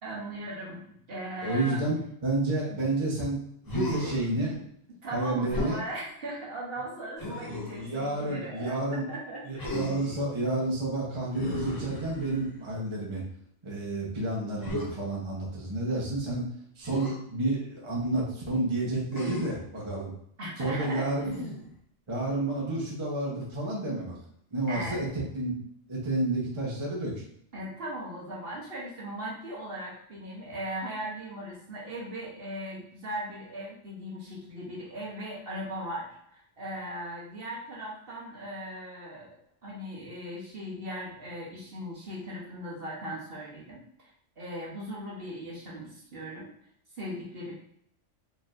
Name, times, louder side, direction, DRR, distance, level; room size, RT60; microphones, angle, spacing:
voice 1, 0.0-0.8 1.1-1.9 5.0-9.8 20.4-21.3 24.7-25.0 27.5-39.4 39.6-44.1 44.4-46.5 47.0-47.5, right 1 dB, 55° right, -5 dB, 1.2 m, -38 dB
voice 2, 1.4-4.6 5.1-5.8 7.2-9.1 9.4-13.2 13.6-16.5 16.8-20.1 20.6-21.3 22.1-24.1 24.5-25.5 25.9-27.2, right 2 dB, 25° right, -4 dB, 0.9 m, -30 dB
Human voice, 3.6-4.3 5.5-5.9 7.2-7.8 9.6-10.2 11.3-12.6 14.6-14.9 16.8-17.2 19.1-19.7 21.2-21.8, left 1 dB, 25° left, 0.5 m, -34 dB
4.4 x 3.1 x 2.5 m, 0.69 s
omnidirectional pair, 1.3 m